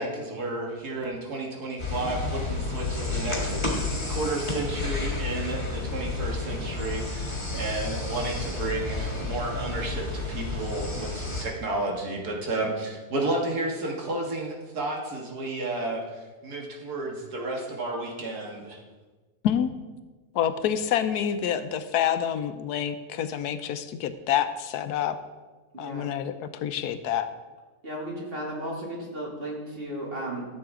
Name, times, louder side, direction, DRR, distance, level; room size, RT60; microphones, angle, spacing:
voice 1, 0.0-16.0 16.4-18.8, right 2 dB, 80° right, -1 dB, 2.2 m, -32 dB
sound 1, 1.8-11.4, left 3 dB, 30° left, 2.0 m, -31 dB
voice 2, 20.3-25.2 25.8-27.3, left 9 dB, 85° left, 11 dB, 1.2 m, -27 dB
voice 3, 25.7-26.0 27.8-30.5, right 1 dB, 35° right, -3 dB, 2.6 m, -34 dB
13.5 x 7.8 x 3.7 m, 1.3 s
omnidirectional pair, 1.6 m